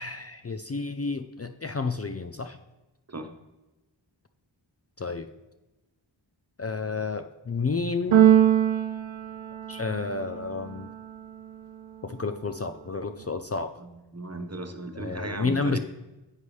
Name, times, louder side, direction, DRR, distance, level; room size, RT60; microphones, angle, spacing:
voice 1, 0.0-2.6 5.0-5.3 6.6-8.2 9.7-10.9 12.0-13.7 14.9-15.8, left 4 dB, 35° left, 8 dB, 0.5 m, -31 dB
Keyboard (musical), 8.1-10.2, right 10 dB, 80° right, 0.6 m, -21 dB
voice 2, 13.8-15.8, right 2 dB, 35° right, 6 dB, 1.2 m, -36 dB
9.4 x 8.2 x 3.2 m, 1.0 s
wide cardioid pair, 40°, 47 cm